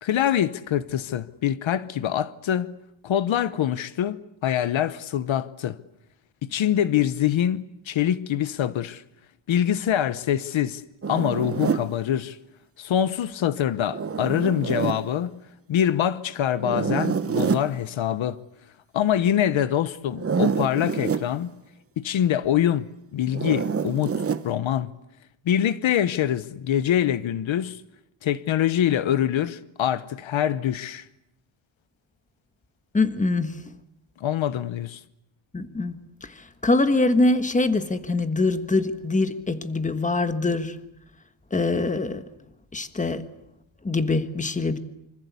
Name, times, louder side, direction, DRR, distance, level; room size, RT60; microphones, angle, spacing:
voice 1, 0.0-2.7 3.0-5.8 6.4-9.0 9.5-10.8 11.1-12.4 12.8-15.4 15.7-18.4 18.9-21.5 22.0-22.9 23.1-24.1 24.4-24.9 25.5-27.8 28.2-31.0 34.2-35.0, left 10 dB, 70° left, 1.0 m, -24 dB
Zipper (clothing), 11.0-11.9 13.8-15.0 16.6-17.7 20.1-21.3 23.3-24.5, right 6 dB, 30° right, 1.0 m, -26 dB
voice 2, 32.9-33.7 35.5-35.9 36.2-40.8 41.5-42.2 42.7-43.3 43.8-44.8, left 2 dB, 15° left, 1.4 m, -24 dB
26.5 x 25.5 x 8.3 m
wide cardioid pair, 175°, 48 cm